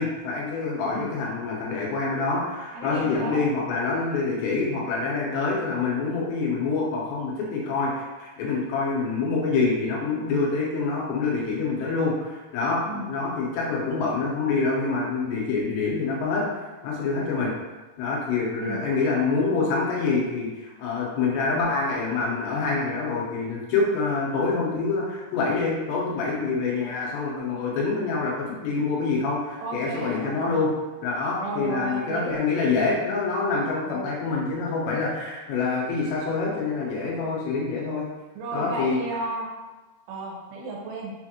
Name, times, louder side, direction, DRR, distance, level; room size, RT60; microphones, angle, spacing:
voice 1, 0.0-16.5 16.8-17.5 18.0-30.7 31.0-38.1 38.5-39.0, left 4 dB, 90° left, -4 dB, 3.2 m, -26 dB
voice 2, 2.7-3.4 12.9-13.1 18.6-18.8 29.6-30.6 31.4-32.4 33.9-34.1 38.4-39.5 40.1-41.1, right 2 dB, 80° right, -2 dB, 2.9 m, -33 dB
6.8 x 2.5 x 2.9 m, 1.2 s
omnidirectional pair, 4.9 m